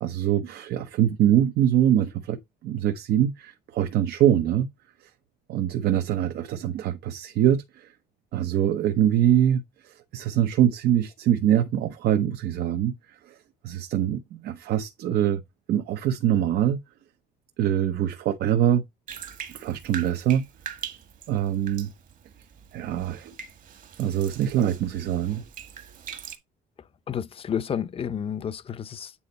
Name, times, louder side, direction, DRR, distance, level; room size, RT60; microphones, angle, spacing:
voice 1, 0.0-4.7 5.0-5.1 5.5-7.9 8.3-13.4 13.6-15.4 15.7-16.8 17.6-18.8 19.5-20.4 21.3-21.9 22.7-23.3 24.0-25.4, right 11 dB, 75° right, 0.9 m, -24 dB
Bathtub (filling or washing), 19.1-26.4, right 8 dB, 50° right, 1.7 m, -42 dB
voice 2, 27.1-29.1, left 8 dB, 35° left, 0.6 m, -30 dB
8.7 x 4.3 x 4.0 m
cardioid pair, 110°, 17 cm